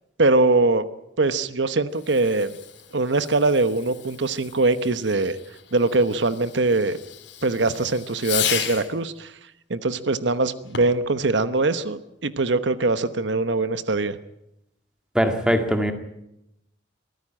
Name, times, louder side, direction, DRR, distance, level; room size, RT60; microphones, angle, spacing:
voice 1, 0.2-0.8 1.2-2.5 2.9-5.4 5.7-7.0 7.4-9.3 9.7-14.2, right 3 dB, 75° right, 13 dB, 1.1 m, -22 dB
Fireworks, 1.9-9.0 10.6-11.1, left 9 dB, 70° left, 3.2 m, -34 dB
voice 2, 15.2-15.9, equal, 5° right, 6 dB, 2.0 m, -21 dB
24.0 x 15.0 x 8.9 m, 0.85 s
head